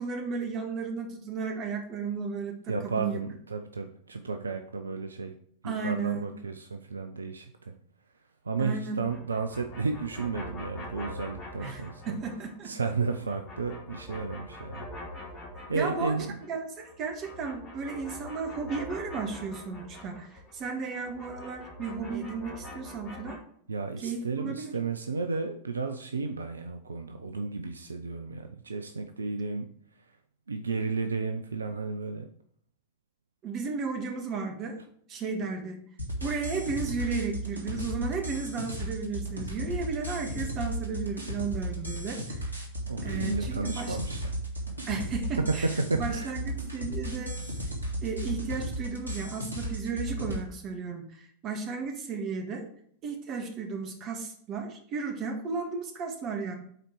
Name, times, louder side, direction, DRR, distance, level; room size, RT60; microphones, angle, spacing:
voice 1, 0.0-3.2 5.6-6.3 8.6-9.0 11.6-12.7 15.7-16.2 16.5-23.4 24.0-24.8 33.4-34.8 35.1-35.8 36.2-42.4 43.0-44.0 44.9-45.7 45.9-47.6 48.0-52.7 53.0-56.6, right 4 dB, 35° right, 4 dB, 1.5 m, -34 dB
voice 2, 2.7-5.4 5.6-7.8 8.4-12.2 12.6-14.9 15.7-16.4 23.7-29.7 30.5-32.3 42.9-44.3 45.4-46.4, right 4 dB, 75° right, 7 dB, 0.5 m, -32 dB
sound 1, 9.1-12.6 12.8-16.5 16.8-23.4, left 1 dB, 40° left, 3.3 m, -44 dB
sound 2, 36.0-50.4, equal, 90° left, 1.5 m, -35 dB
7.8 x 4.4 x 4.6 m, 0.63 s
figure-of-eight pair, 90°, 0 cm